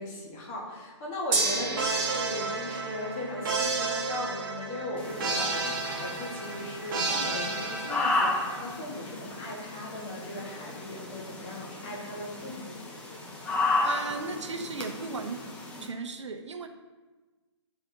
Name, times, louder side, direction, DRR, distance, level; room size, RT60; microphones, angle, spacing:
voice 1, 0.0-12.7, left 1 dB, 25° left, -3 dB, 1.6 m, -38 dB
Gong, 1.3-11.5, right 3 dB, 25° right, 1.0 m, -38 dB
sound 1, 1.8-8.6, right 3 dB, 45° right, 1.1 m, -32 dB
sound 2, 5.0-15.9, left 2 dB, 5° left, 0.5 m, -34 dB
voice 2, 13.8-15.4 15.8-16.7, right 4 dB, 75° right, 6 dB, 0.7 m, -36 dB
9.6 x 4.1 x 2.8 m, 1.2 s
figure-of-eight pair, 140°, 15 cm